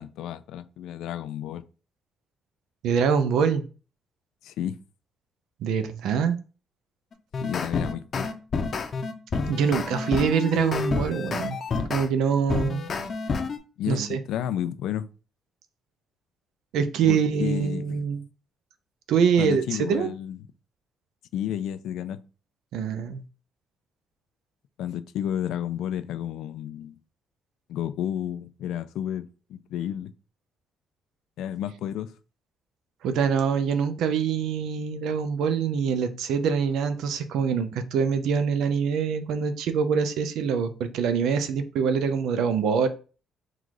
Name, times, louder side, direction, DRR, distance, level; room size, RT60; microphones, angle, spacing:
voice 1, 0.0-1.6 4.4-4.8 7.4-8.3 13.8-15.1 17.1-18.0 19.4-20.4 21.3-22.2 24.8-27.0 27.7-30.1 31.4-32.1, left 10 dB, 85° left, 0.4 m, -31 dB
voice 2, 2.8-3.6 5.6-6.4 9.4-11.6 11.9-12.8 13.9-14.2 16.7-18.2 19.1-20.1 22.7-23.2 33.0-42.9, right 6 dB, 80° right, 0.6 m, -24 dB
sound 1, 7.1-12.1 12.5-13.6, left 4 dB, 40° left, 0.7 m, -29 dB
3.8 x 2.4 x 4.7 m
cardioid pair, 110°, 0 cm